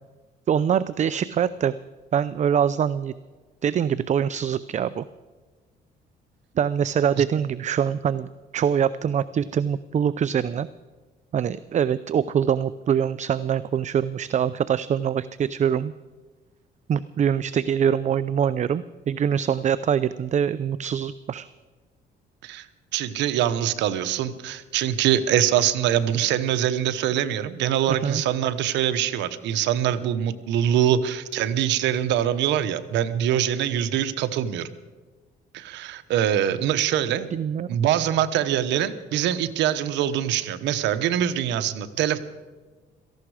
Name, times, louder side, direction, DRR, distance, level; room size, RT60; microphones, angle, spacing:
voice 1, 0.5-1.7 2.1-3.1 3.6-5.0 6.6-10.7 11.3-15.9 16.9-21.5 28.0-28.2 37.3-37.8, right 8 dB, 40° right, 16 dB, 0.5 m, -24 dB
voice 2, 22.9-34.7 35.5-37.3 37.7-42.2, right 10 dB, 85° right, 11 dB, 1.1 m, -24 dB
17.5 x 15.0 x 4.9 m, 1.4 s
cardioid pair, 95°, 18 cm